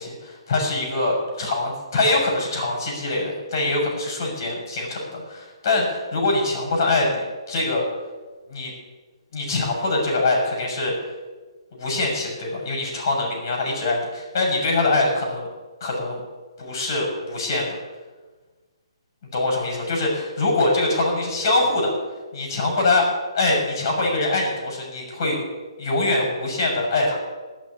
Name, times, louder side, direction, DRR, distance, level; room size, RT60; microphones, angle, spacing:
voice 1, 0.0-7.8 8.5-8.7 9.3-10.9 11.7-15.5 15.8-16.2 16.6-17.8 19.3-21.9 22.3-23.1 23.3-25.4 25.8-27.2, left 2 dB, 40° left, 0 dB, 6.6 m, -23 dB
17.5 x 6.4 x 10.0 m, 1.3 s
hypercardioid pair, 170°, 3 cm